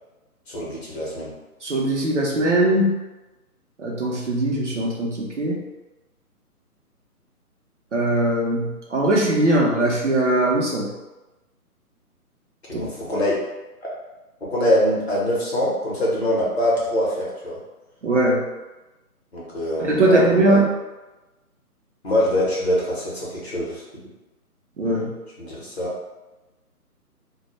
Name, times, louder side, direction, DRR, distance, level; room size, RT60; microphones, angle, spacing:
voice 1, 0.5-1.3 12.7-13.4 14.5-17.6 19.3-20.6 22.0-23.8 25.4-25.9, left 1 dB, 45° left, -6 dB, 0.7 m, -23 dB
voice 2, 1.6-2.9 3.8-5.6 7.9-10.9 12.7-12.9 18.0-18.4 19.9-20.7 24.8-25.1, right 1 dB, 50° right, -3 dB, 0.5 m, -20 dB
2.1 x 2.0 x 2.9 m, 1.1 s
figure-of-eight pair, 145°, 46 cm